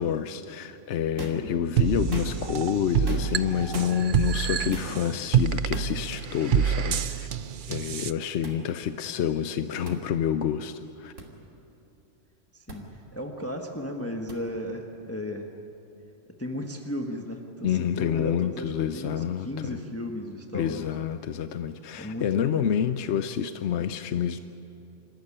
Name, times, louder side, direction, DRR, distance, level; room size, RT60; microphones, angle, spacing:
voice 1, 0.0-7.3 7.7-11.1 17.6-19.8 20.5-24.4, left 9 dB, 70° left, 10 dB, 0.9 m, -28 dB
sound 1, 1.2-1.5 2.0-2.5 3.1-3.4 3.7-3.9 4.7-5.0 5.7-6.0 7.0-7.1 8.4-8.6 9.8-10.0 11.2-11.3 12.7-12.8 14.3-14.4, right 1 dB, 90° right, 3.2 m, -37 dB
sound 2, 1.8-8.1, right 8 dB, 50° right, 0.7 m, -27 dB
voice 2, 12.5-12.9 13.1-15.5 16.4-20.9 22.0-22.7, left 1 dB, 10° left, 2 dB, 1.3 m, -35 dB
27.0 x 14.5 x 9.9 m, 2.8 s
omnidirectional pair, 1.3 m